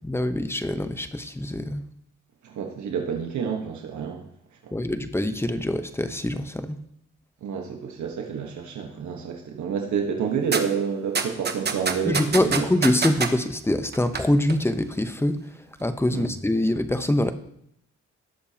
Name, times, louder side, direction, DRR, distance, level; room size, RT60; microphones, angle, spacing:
voice 1, 0.0-1.8 4.7-6.8 12.0-15.4 15.8-17.3, left 1 dB, 10° left, 10 dB, 0.8 m, -24 dB
voice 2, 2.4-4.3 4.6-4.7 7.4-12.7 16.1-16.3, right 6 dB, 70° right, 2 dB, 1.3 m, -29 dB
sound 1, 10.5-10.6 11.1-13.3 13.9-14.2 14.5-14.6, right 5 dB, 35° right, 1.0 m, -25 dB
18.5 x 6.8 x 2.9 m, 0.72 s
cardioid pair, 90°, 30 cm